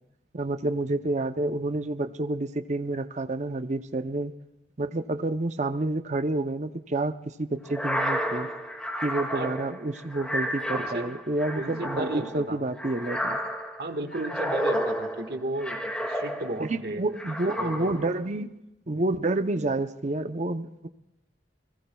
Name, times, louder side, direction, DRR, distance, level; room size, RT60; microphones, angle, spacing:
voice 1, 0.3-4.3 4.8-8.5 9.0-13.4 16.6-18.5 18.9-20.9, right 2 dB, 40° right, 9 dB, 0.7 m, -29 dB
sound 1, 7.7-16.8 17.2-18.2, equal, 5° left, 2.1 m, -31 dB
voice 2, 10.7-11.1 11.5-12.6 13.8-17.0 17.5-18.0, right 1 dB, 60° right, 6 dB, 1.7 m, -34 dB
30.0 x 20.0 x 2.3 m, 0.93 s
head